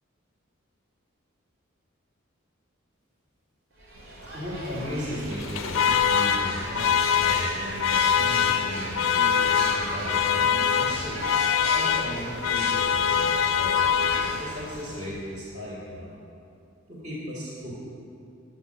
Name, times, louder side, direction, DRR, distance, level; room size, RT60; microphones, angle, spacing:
sound 1, 3.8-15.4, right 1 dB, 85° right, 2.6 m, -36 dB
voice 1, 4.3-11.2 11.7-16.1 16.9-17.8, equal, 40° right, -6 dB, 2.3 m, -36 dB
Alarm, 5.3-14.7, left 8 dB, 75° left, 0.4 m, -24 dB
11.0 x 8.4 x 6.6 m, 2.5 s
head